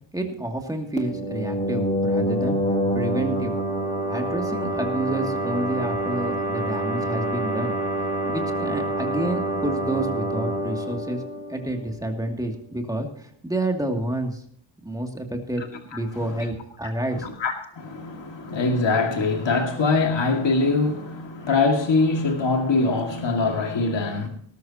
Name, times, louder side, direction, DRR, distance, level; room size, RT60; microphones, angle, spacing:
voice 1, 0.1-2.6 2.9-3.6 4.1-7.8 8.2-11.2 11.5-14.4 14.8-15.6 15.9-17.3, right 1 dB, 5° right, 2.5 m, -29 dB
sound 1, 1.0-12.4, right 1 dB, 15° left, 1.9 m, -27 dB
voice 2, 17.2-24.3, left 3 dB, 65° left, 2.2 m, -23 dB
19.0 x 13.5 x 2.9 m
wide cardioid pair, 130°, 48 cm